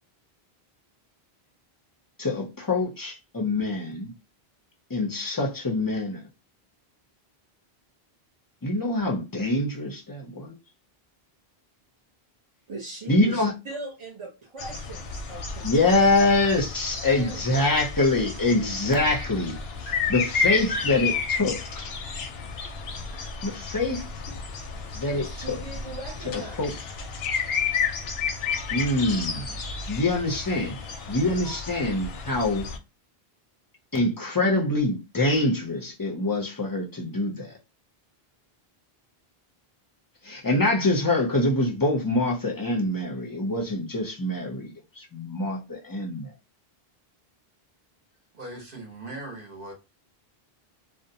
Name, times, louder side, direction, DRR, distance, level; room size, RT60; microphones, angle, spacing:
voice 1, 2.2-4.1 4.9-6.2 8.6-10.5 13.1-13.5 15.6-19.5 19.8-21.6 23.4-24.0 24.9-25.6 26.6-26.7 28.7-29.5 29.9-30.8 31.1-32.7 33.9-37.5 40.2-46.3, left 2 dB, 35° left, 0.4 m, -25 dB
voice 2, 12.7-15.9 17.2-17.6 25.1-26.7, right 2 dB, 40° right, 0.5 m, -39 dB
sound 1, 14.6-32.8, left 5 dB, 85° left, 0.8 m, -32 dB
voice 3, 48.3-49.7, right 2 dB, 60° right, 1.1 m, -39 dB
2.6 x 2.1 x 2.6 m
omnidirectional pair, 1.0 m